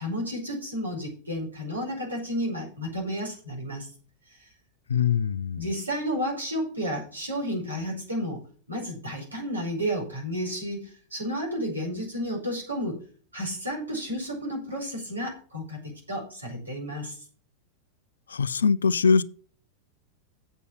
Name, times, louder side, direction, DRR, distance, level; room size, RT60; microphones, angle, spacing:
voice 1, 0.0-3.9 4.3-4.5 5.6-8.4 8.7-13.0 13.3-17.2, equal, 80° right, 5.1 m, -32 dB
voice 2, 4.9-5.7 18.3-19.2, left 5 dB, 70° left, 0.4 m, -22 dB
8.3 x 6.9 x 7.2 m
figure-of-eight pair, 90°, 0 cm